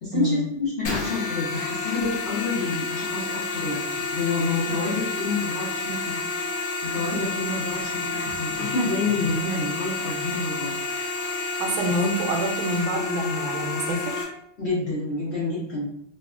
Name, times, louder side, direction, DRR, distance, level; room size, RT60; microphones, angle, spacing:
voice 1, 0.0-3.8 4.1-6.5 6.9-10.7 14.6-15.9, left 3 dB, 50° left, -9 dB, 0.8 m, -28 dB
sound 1, 0.8-14.2, left 3 dB, 90° left, 0.7 m, -30 dB
voice 2, 11.5-14.3, right 1 dB, 80° right, 2 dB, 1.3 m, -27 dB
3.4 x 2.2 x 2.4 m, 0.72 s
omnidirectional pair, 2.1 m